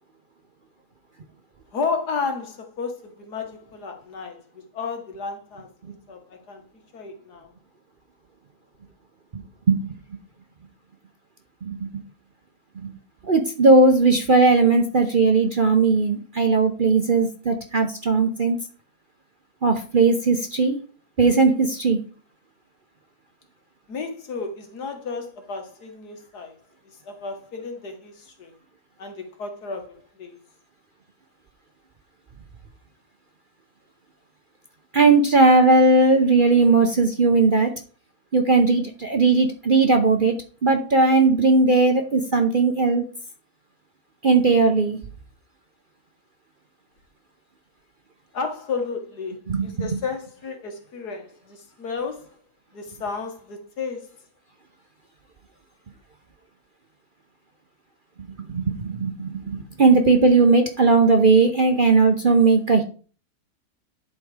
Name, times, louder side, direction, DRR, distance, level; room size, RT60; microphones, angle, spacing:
voice 1, 1.7-4.4 4.7-5.7 6.1-6.6 6.9-7.5 23.9-26.6 27.1-28.5 29.0-30.4 48.3-52.3 52.7-54.1, left 4 dB, 70° left, 2.0 m, -32 dB
voice 2, 13.3-18.6 19.6-20.8 21.2-22.0 34.9-37.7 38.3-40.4 40.6-43.1 44.2-45.0 49.5-49.8 58.5-62.8, right 3 dB, 40° right, 0.8 m, -18 dB
11.0 x 4.2 x 4.9 m
omnidirectional pair, 1.7 m